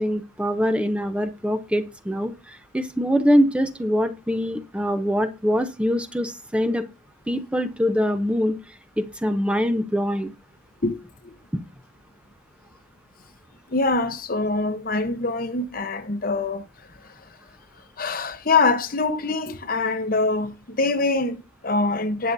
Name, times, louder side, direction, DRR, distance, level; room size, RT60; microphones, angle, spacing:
voice 1, 0.0-6.8 7.3-8.6 9.0-10.3, equal, 5° right, 0.7 m, -23 dB
voice 2, 10.8-11.3 13.7-16.7 17.0-17.2 18.0-22.3, left 3 dB, 45° left, 0.9 m, -24 dB
19.5 x 6.8 x 2.7 m
head